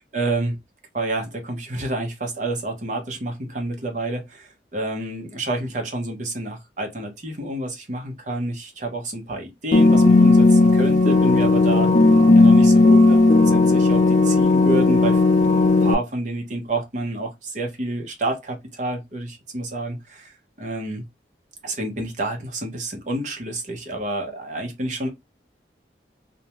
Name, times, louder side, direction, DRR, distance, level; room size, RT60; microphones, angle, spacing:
voice 1, 0.1-0.5 0.9-11.9 12.3-20.0 20.6-21.0 21.6-25.1, right 2 dB, 45° right, 0.8 m, -29 dB
sound 1, 9.7-15.9, left 3 dB, 45° left, 0.4 m, -15 dB
2.5 x 2.1 x 2.9 m
head